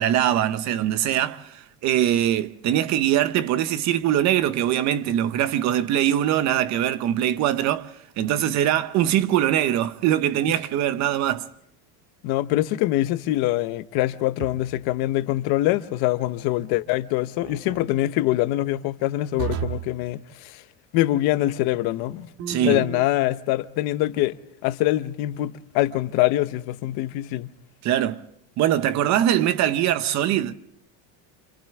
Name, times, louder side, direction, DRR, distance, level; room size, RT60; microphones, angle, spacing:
voice 1, 0.0-11.5 22.5-22.8 27.8-28.2 28.6-30.5, right 11 dB, 40° right, 0.8 m, -22 dB
voice 2, 12.2-20.6 20.9-22.3 22.6-24.4 24.6-27.5, left 15 dB, 65° left, 1.0 m, -24 dB
sound 1, 14.4-14.9 17.4-17.9 19.4-19.9 22.4-23.1, right 10 dB, 60° right, 1.8 m, -33 dB
28.0 x 27.0 x 3.6 m
cardioid pair, 175°, 41 cm